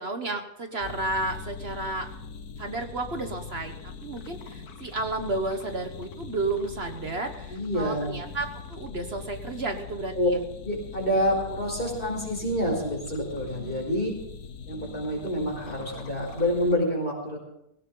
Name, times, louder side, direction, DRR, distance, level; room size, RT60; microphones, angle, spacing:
voice 1, 0.0-2.1 2.6-3.7 4.0-10.4 11.9-12.2, right 2 dB, 40° right, 6 dB, 1.3 m, -32 dB
sound 1, 0.8-16.8, left 5 dB, 70° left, 1.6 m, -42 dB
voice 2, 7.5-8.1 10.2-10.3 10.6-14.1 14.7-17.4, equal, 30° left, -1 dB, 5.3 m, -27 dB
18.0 x 17.5 x 3.9 m, 0.79 s
omnidirectional pair, 1.7 m